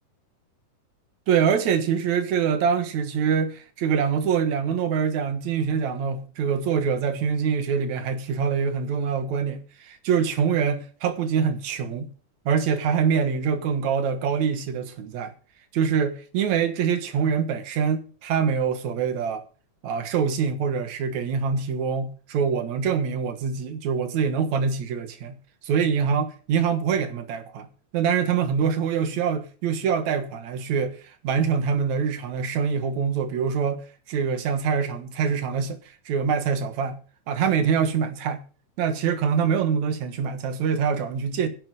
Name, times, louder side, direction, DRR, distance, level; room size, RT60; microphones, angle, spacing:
voice 1, 1.3-12.1 12.5-15.3 15.7-19.4 19.8-25.4 25.6-27.7 27.9-37.0 37.3-38.4 38.8-41.5, right 6 dB, 65° right, 2.6 m, -24 dB
11.0 x 7.8 x 8.0 m
omnidirectional pair, 3.7 m